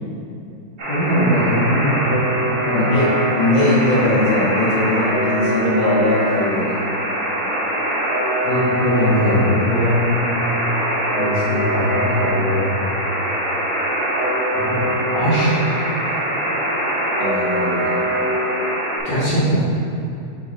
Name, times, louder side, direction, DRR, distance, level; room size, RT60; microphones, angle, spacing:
Alarm, 0.8-19.0, equal, 55° right, 2.1 m, -22 dB
voice 1, 0.9-2.2 2.6-2.9 8.4-10.0 11.2-12.7 14.5-14.8 15.1-15.9 19.0-19.6, equal, 65° left, -8 dB, 2.3 m, -20 dB
voice 2, 2.7-6.8 17.2-17.9, left 1 dB, 40° left, -5 dB, 0.9 m, -20 dB
6.7 x 4.3 x 4.0 m, 2.6 s
omnidirectional pair, 2.1 m